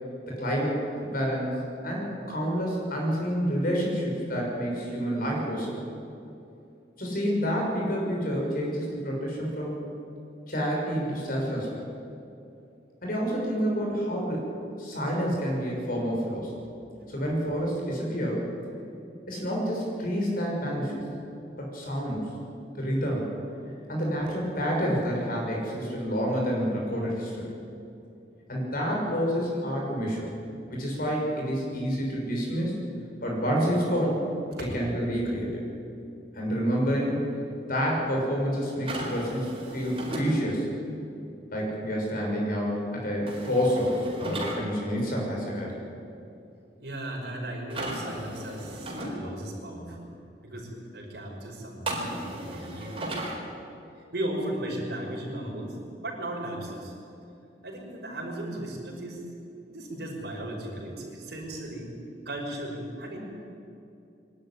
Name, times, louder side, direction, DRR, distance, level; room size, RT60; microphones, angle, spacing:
voice 1, 0.4-1.6 1.8-5.7 7.0-9.8 10.5-11.8 13.0-14.5 14.8-16.5 17.1-18.4 19.3-21.0 21.6-22.3 22.7-23.3 23.9-27.5 28.5-30.2 30.7-32.8 33.2-34.3 34.7-35.5 36.3-37.2 37.7-40.7 41.5-45.8, equal, 55° left, -2 dB, 6.2 m, -28 dB
sound 1, 38.8-40.3 43.3-44.6 47.7-49.1 51.9-53.4, right 1 dB, 30° right, 4.6 m, -35 dB
voice 2, 46.8-50.1 50.4-53.4 54.1-55.8 56.0-56.9 57.6-59.2 59.7-61.9 62.3-63.2, right 1 dB, 65° right, -1 dB, 5.5 m, -36 dB
23.0 x 12.5 x 9.9 m, 2.7 s
head